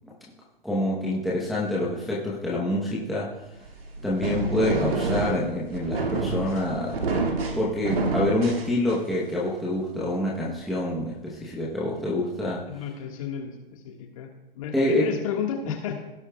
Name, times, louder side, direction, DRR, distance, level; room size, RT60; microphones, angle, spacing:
voice 1, 0.6-3.3 4.0-7.0 7.3-12.6 14.7-15.1, left 1 dB, ahead, -7 dB, 0.9 m, -26 dB
sound 1, 3.6-9.3, right 3 dB, 80° right, 2.1 m, -28 dB
voice 2, 12.7-14.3 14.5-16.0, left 7 dB, 35° left, 3 dB, 1.6 m, -32 dB
17.0 x 8.4 x 2.3 m, 0.98 s
hypercardioid pair, 155°, 29 cm